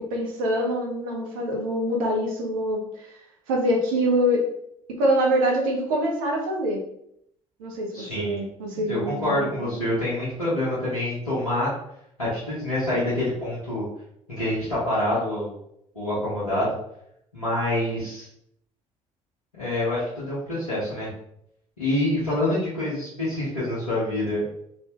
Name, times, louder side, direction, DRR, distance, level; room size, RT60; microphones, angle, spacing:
voice 1, 0.1-2.8 3.5-4.4 5.0-6.8 7.6-9.9, equal, 70° right, 0 dB, 1.0 m, -25 dB
voice 2, 7.9-8.4 8.7-11.7 12.2-13.9 14.3-15.5 15.9-16.7 17.3-18.3 19.6-21.1 21.8-24.5, left 1 dB, 90° left, -11 dB, 1.3 m, -26 dB
4.2 x 3.2 x 3.0 m, 0.74 s
figure-of-eight pair, 50°, 18 cm